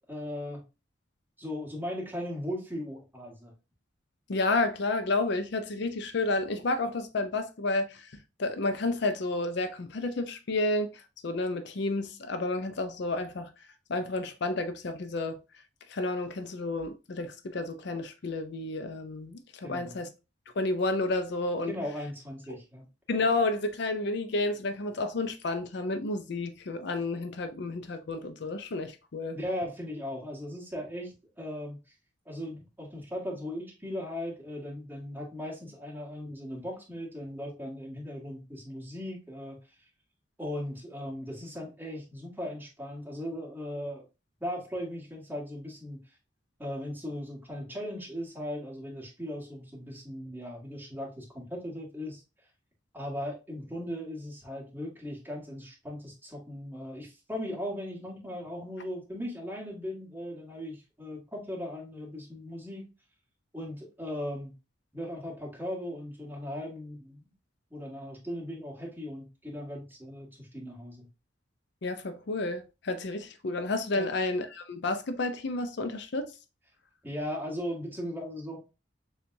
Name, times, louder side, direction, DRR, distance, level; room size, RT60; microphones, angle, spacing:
voice 1, 0.1-0.6 1.4-3.5 19.6-20.0 21.7-22.9 29.3-31.8 32.3-39.6 40.4-44.0 44.4-46.0 46.6-52.2 52.9-62.8 63.5-64.5 64.9-67.2 67.7-71.1 74.0-74.1 77.0-78.6, left 1 dB, 10° right, 1.8 m, -38 dB
voice 2, 4.3-8.1 8.4-13.5 13.9-15.4 15.9-20.1 20.6-21.8 23.1-29.4 71.8-76.3, left 2 dB, 65° left, 0.5 m, -31 dB
6.7 x 2.4 x 2.6 m
head